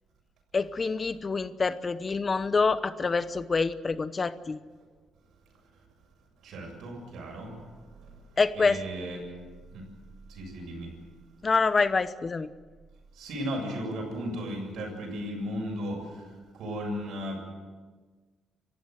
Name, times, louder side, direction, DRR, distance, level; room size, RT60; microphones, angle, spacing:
voice 1, 0.5-4.6 8.4-8.8 11.4-12.5, left 4 dB, 35° left, 14 dB, 0.9 m, -26 dB
voice 2, 6.4-9.3 9.7-9.9 10.3-10.9 13.1-17.4, equal, 75° right, 2 dB, 7.3 m, -36 dB
28.0 x 15.0 x 8.0 m, 1.4 s
cardioid pair, 90°, 0 cm